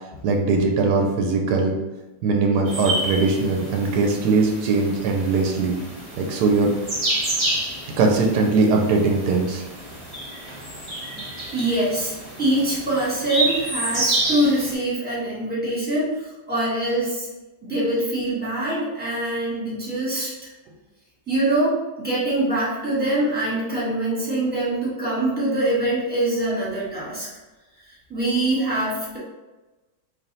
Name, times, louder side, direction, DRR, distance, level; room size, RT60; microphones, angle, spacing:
voice 1, 0.2-1.7 2.2-5.8 6.2-6.7 8.0-9.6, right 3 dB, 80° right, 1 dB, 1.2 m, -20 dB
sound 1, 2.7-14.7, right 1 dB, 25° right, 0.8 m, -29 dB
voice 2, 11.5-17.3 17.6-20.3 21.3-27.3 28.1-29.2, right 1 dB, 5° right, -7 dB, 1.3 m, -24 dB
3.4 x 2.6 x 4.0 m, 1.1 s
omnidirectional pair, 1.8 m